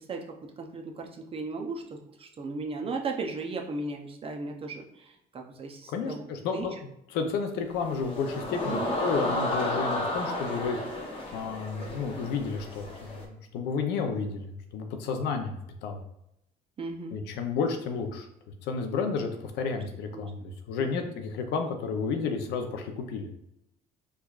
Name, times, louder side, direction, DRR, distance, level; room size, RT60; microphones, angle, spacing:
voice 1, 0.0-6.2 6.5-6.7 8.7-8.9 12.2-12.3 16.8-17.2 19.7-19.8 20.1-20.3 20.8-21.1, right 3 dB, 35° right, 2 dB, 0.5 m, -36 dB
voice 2, 5.9-6.7 7.1-10.8 11.3-16.0 17.1-18.3 18.6-23.3, left 5 dB, 90° left, 5 dB, 0.5 m, -31 dB
sound 1, 7.7-13.2, left 1 dB, 30° left, 0.8 m, -32 dB
4.6 x 2.3 x 2.3 m, 0.81 s
cardioid pair, 110°, 17 cm